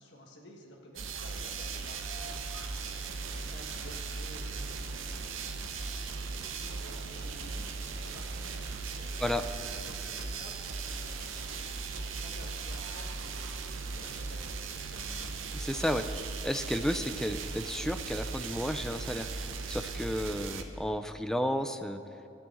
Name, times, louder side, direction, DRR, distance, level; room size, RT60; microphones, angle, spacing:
voice 1, 0.0-5.8 6.0-7.7 8.0-8.7 9.0-15.1, left 1 dB, 60° left, 0 dB, 1.5 m, -53 dB
sound 1, 1.0-20.6, right 4 dB, 85° right, 0.8 m, -38 dB
voice 2, 15.5-16.1 16.4-22.0, equal, 5° left, 8 dB, 0.4 m, -32 dB
13.5 x 6.2 x 7.8 m, 2.7 s
head